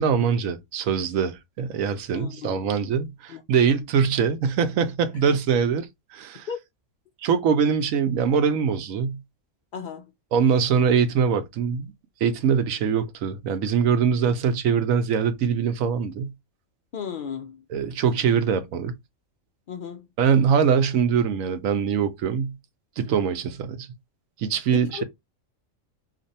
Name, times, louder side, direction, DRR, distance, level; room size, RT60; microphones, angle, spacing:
voice 1, 0.0-6.5 7.2-9.2 10.3-11.9 12.2-16.3 17.7-18.9 20.2-22.6 23.0-23.9 24.4-25.0, right 7 dB, 90° right, 1.1 m, -23 dB
voice 2, 2.1-2.6 3.3-3.4 3.8-3.9 6.5-6.6 9.7-10.1 16.9-17.6 19.7-20.1 24.7-25.0, left 7 dB, 70° left, 0.5 m, -34 dB
2.5 x 2.5 x 4.0 m
omnidirectional pair, 1.4 m